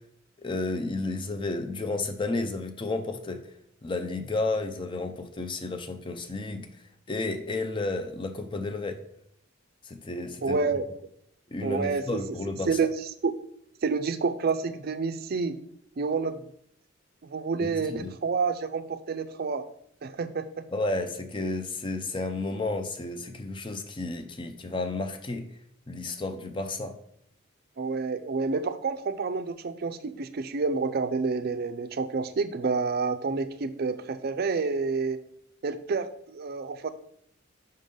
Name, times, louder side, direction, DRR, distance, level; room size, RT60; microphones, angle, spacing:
voice 1, 0.4-3.4 3.8-6.7 7.1-9.0 9.8-10.6 11.5-12.8 17.6-18.1 20.7-25.5 25.9-26.9, left 2 dB, 25° left, 8 dB, 0.5 m, -32 dB
voice 2, 10.4-10.8 11.6-12.2 12.7-12.9 13.2-13.3 13.8-15.6 16.0-16.4 17.2-19.6 20.0-20.4 27.8-35.2 35.6-36.9, right 4 dB, 50° right, 11 dB, 0.4 m, -28 dB
5.4 x 3.8 x 5.3 m, 0.70 s
head